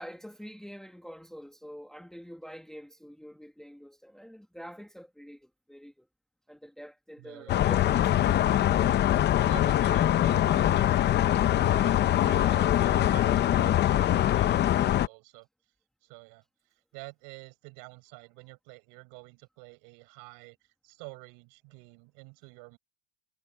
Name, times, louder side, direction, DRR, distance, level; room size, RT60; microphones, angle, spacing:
voice 1, 0.0-6.1 6.5-8.2 12.4-12.8, equal, ahead, 1.7 m, -46 dB
voice 2, 7.2-7.6 8.5-8.6 9.4-15.5 16.0-16.4 16.9-22.8, right 31 dB, 65° right, 7.3 m, -48 dB
sound 1, 7.5-15.1, left 12 dB, 30° left, 0.7 m, -23 dB
cardioid pair, 145°, 37 cm